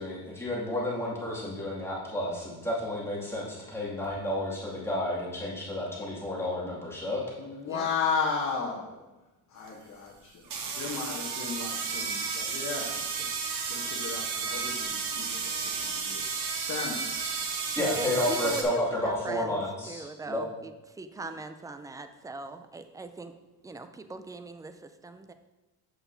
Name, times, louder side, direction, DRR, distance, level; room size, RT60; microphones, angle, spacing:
voice 1, 0.0-7.2 17.7-20.4, left 1 dB, 5° left, -6 dB, 2.3 m, -31 dB
voice 2, 7.4-9.0 9.5-10.4 10.8-13.0 13.7-16.2 16.7-17.0, left 5 dB, 45° left, -3 dB, 1.1 m, -34 dB
sound 1, 9.7-9.8 10.4-18.6, right 5 dB, 80° right, 1.0 m, -33 dB
voice 3, 18.0-19.6 19.9-23.3 23.6-25.3, right 3 dB, 10° right, 9 dB, 0.3 m, -40 dB
7.8 x 5.9 x 2.7 m, 1.1 s
cardioid pair, 105°, 39 cm